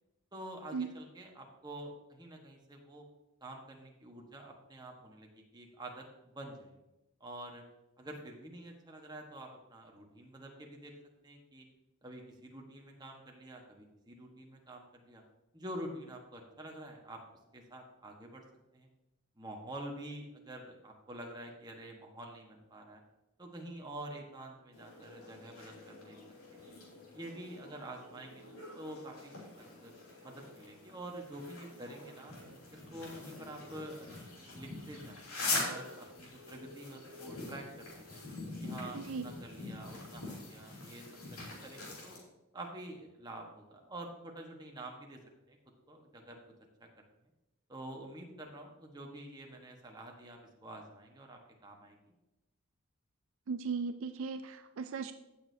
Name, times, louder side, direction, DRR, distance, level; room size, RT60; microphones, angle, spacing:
voice 1, 0.3-3.0 3.4-6.0 6.3-6.8 7.2-7.6 8.0-10.9 11.2-11.7 12.0-15.2 15.5-17.2 17.5-18.4 18.7-18.9 19.4-23.0 23.4-26.2 26.5-26.7 27.1-29.4 29.8-29.9 30.2-32.3 32.7-38.2 38.6-42.2 42.5-45.2 45.5-45.6 45.9-46.4 46.8-47.1 47.7-52.0, right 1 dB, 20° right, 1 dB, 1.3 m, -47 dB
sound 1, 24.7-42.2, left 3 dB, 75° left, 3.1 m, -44 dB
voice 2, 38.9-39.3 53.5-55.1, right 5 dB, 65° right, 9 dB, 0.4 m, -37 dB
15.5 x 6.4 x 2.8 m, 0.99 s
head